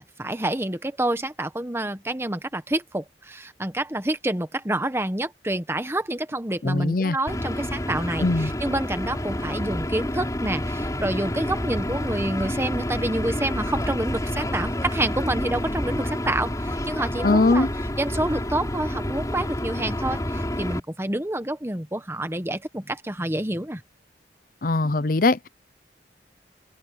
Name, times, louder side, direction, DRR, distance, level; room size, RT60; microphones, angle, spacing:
voice 1, 0.0-17.7 18.0-23.8, right 1 dB, 15° right, 1.2 m, -28 dB
voice 2, 6.6-7.2 8.2-8.5 17.2-17.7 24.6-25.5, left 3 dB, 50° left, 0.7 m, -21 dB
sound 1, 7.3-20.8, left 1 dB, 20° left, 4.2 m, -29 dB
open air
head